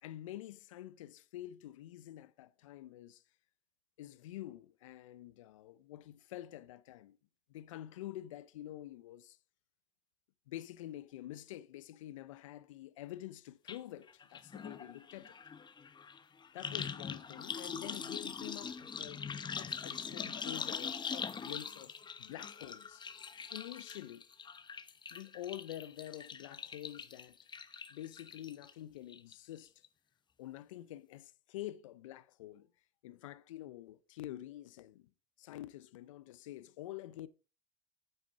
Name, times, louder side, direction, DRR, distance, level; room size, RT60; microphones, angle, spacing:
voice 1, 0.0-3.2 4.0-7.2 7.5-9.4 10.5-15.4 16.5-19.3 19.5-23.1 23.5-24.2 25.1-27.4 27.9-29.7 30.4-32.7 33.0-35.1 35.4-37.3, left 14 dB, 85° left, 0.6 m, -47 dB
sound 1, 13.7-13.8 14.1-28.7 29.1-29.6 29.8-29.9, left 6 dB, 30° left, 0.9 m, -43 dB
9.0 x 8.1 x 3.6 m
hypercardioid pair, 75°, 16 cm